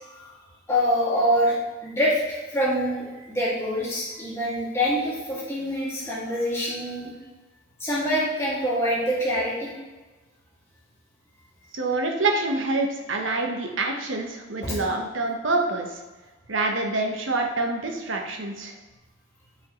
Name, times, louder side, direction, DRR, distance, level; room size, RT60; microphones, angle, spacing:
voice 1, 0.7-1.6 1.8-7.1 7.8-9.7 14.6-14.8, equal, 15° left, -8 dB, 2.3 m, -25 dB
voice 2, 11.7-15.9 16.5-18.8, right 2 dB, 90° right, 2 dB, 1.1 m, -26 dB
8.7 x 5.2 x 3.1 m, 1.2 s
head